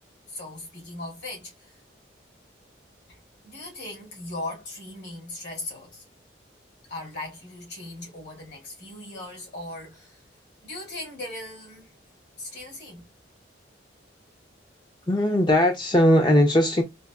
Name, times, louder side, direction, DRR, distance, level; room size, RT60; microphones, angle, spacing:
voice 1, 0.3-1.5 3.4-6.0 6.9-10.2 10.6-11.9 12.4-13.0, left 2 dB, 65° left, 2.2 m, -38 dB
voice 2, 15.1-16.8, left 1 dB, 25° left, 0.5 m, -19 dB
4.0 x 2.9 x 2.3 m
head